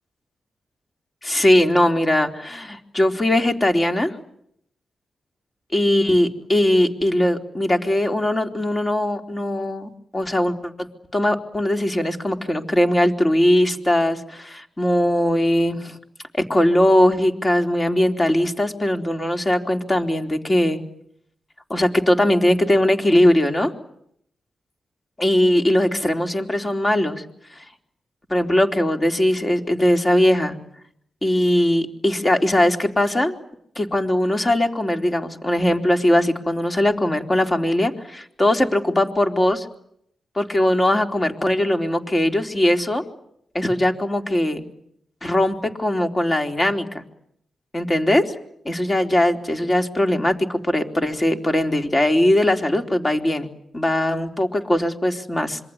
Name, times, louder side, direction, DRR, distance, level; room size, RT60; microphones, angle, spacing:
voice 1, 1.2-4.1 5.7-10.9 11.1-16.0 16.3-20.8 21.7-23.7 25.2-27.2 28.3-30.6 31.2-33.3 33.8-39.6 40.4-43.0 43.5-44.6 45.2-47.0 47.7-48.3 48.7-53.5 53.7-55.6, left 1 dB, 30° left, 4 dB, 4.0 m, -20 dB
27.0 x 23.0 x 9.7 m, 0.73 s
supercardioid pair, 45°, 0 cm